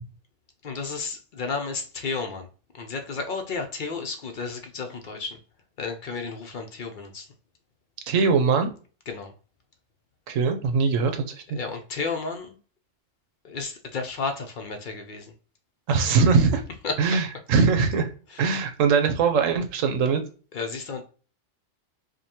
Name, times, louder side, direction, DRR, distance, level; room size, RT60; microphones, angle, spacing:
voice 1, 0.6-2.5 2.7-5.4 5.8-7.3 9.1-9.3 11.5-12.5 13.4-15.3 16.8-17.0 18.3-18.5 20.5-21.0, left 4 dB, 55° left, 0.6 m, -32 dB
voice 2, 8.1-8.7 10.3-11.6 15.9-16.6 17.0-18.1 18.4-20.2, right 5 dB, 85° right, 1.1 m, -21 dB
5.0 x 2.2 x 2.8 m
omnidirectional pair, 1.3 m